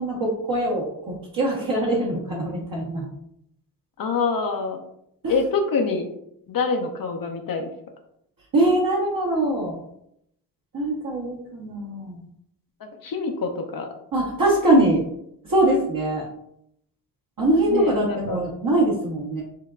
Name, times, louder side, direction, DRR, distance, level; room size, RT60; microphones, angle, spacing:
voice 1, 0.0-3.1 5.2-5.3 8.5-9.8 10.7-12.2 14.1-15.0 15.4-16.3 17.4-19.4, right 1 dB, 45° right, -5 dB, 1.2 m, -22 dB
voice 2, 4.0-4.8 5.3-6.1 6.5-7.7 12.8-13.9 17.7-18.4, left 4 dB, 50° left, 3 dB, 0.7 m, -26 dB
6.5 x 2.2 x 2.4 m, 0.75 s
supercardioid pair, 60°, 46 cm